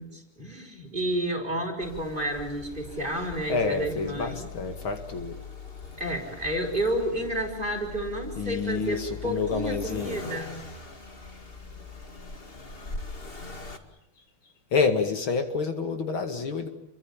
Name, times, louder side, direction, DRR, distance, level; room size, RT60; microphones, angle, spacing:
voice 1, 0.0-4.5 6.0-10.6 11.7-11.8, right 1 dB, 20° right, 2 dB, 6.2 m, -31 dB
Accelerating revving vroom, 1.8-13.8, left 4 dB, 25° left, 2.3 m, -42 dB
voice 2, 3.5-5.4 8.4-10.2 14.7-16.7, left 5 dB, 65° left, 6 dB, 3.0 m, -28 dB
29.5 x 24.0 x 7.4 m, 0.83 s
omnidirectional pair, 2.4 m